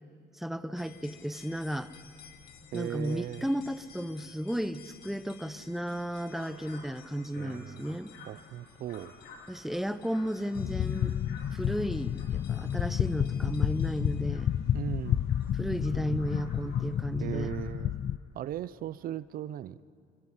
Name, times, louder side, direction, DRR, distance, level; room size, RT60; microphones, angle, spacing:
voice 1, 0.3-1.9 2.7-8.1 9.5-11.1 11.5-14.5 15.5-17.5, equal, ahead, 12 dB, 0.8 m, -34 dB
sound 1, 0.8-17.2, left 7 dB, 70° left, 1.8 m, -56 dB
voice 2, 2.7-3.5 7.3-8.0 8.3-9.1 14.7-15.3 17.2-17.9 18.3-19.8, right 12 dB, 60° right, 17 dB, 0.7 m, -37 dB
sound 2, 5.8-17.7, left 4 dB, 85° left, 3.8 m, -55 dB
sound 3, 10.5-18.2, left 10 dB, 45° left, 0.5 m, -30 dB
25.5 x 22.5 x 5.6 m, 2.3 s
cardioid pair, 110°, 17 cm